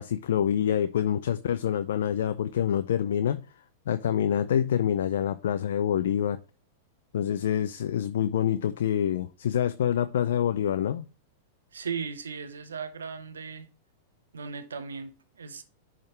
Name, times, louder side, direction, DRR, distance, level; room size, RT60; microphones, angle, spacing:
voice 1, 0.0-3.4 3.9-6.4 7.1-11.1, left 9 dB, 75° left, 0.4 m, -26 dB
voice 2, 11.7-13.7 14.3-15.6, right 6 dB, 90° right, 1.0 m, -37 dB
10.5 x 3.7 x 3.2 m
hypercardioid pair, 115°, 0 cm